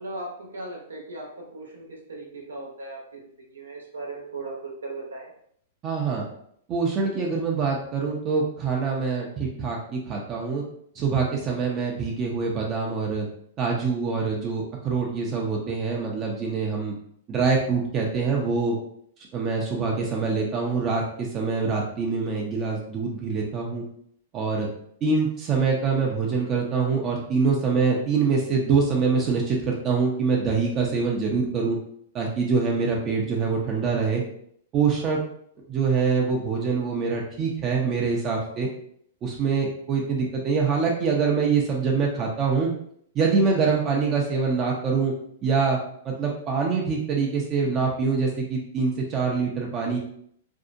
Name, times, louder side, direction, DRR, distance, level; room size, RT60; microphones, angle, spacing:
voice 1, 0.0-5.3, right 2 dB, 90° right, -2 dB, 0.8 m, -38 dB
voice 2, 5.8-6.2 6.7-10.6 10.9-13.3 13.6-16.9 17.3-18.8 19.3-23.8 24.3-24.7 25.0-31.8 32.1-34.2 34.7-35.2 35.7-38.7 39.2-42.7 43.1-45.1 45.4-45.8 46.0-50.0, right 5 dB, 30° right, -1 dB, 0.5 m, -24 dB
2.6 x 2.1 x 2.5 m, 0.67 s
hypercardioid pair, 115°, 0 cm